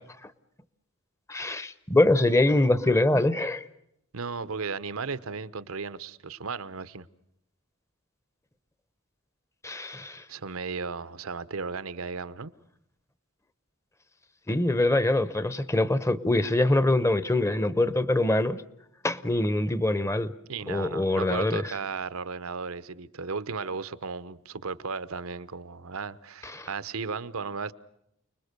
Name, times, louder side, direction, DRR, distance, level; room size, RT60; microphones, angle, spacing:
voice 1, 1.3-3.7 9.6-10.2 14.5-18.6 19.0-20.3 20.7-21.6 26.5-26.7, left 2 dB, 15° left, 0.9 m, -24 dB
voice 2, 4.1-7.1 10.3-12.5 20.5-27.7, right 4 dB, 80° right, 0.9 m, -35 dB
30.0 x 21.0 x 6.7 m
head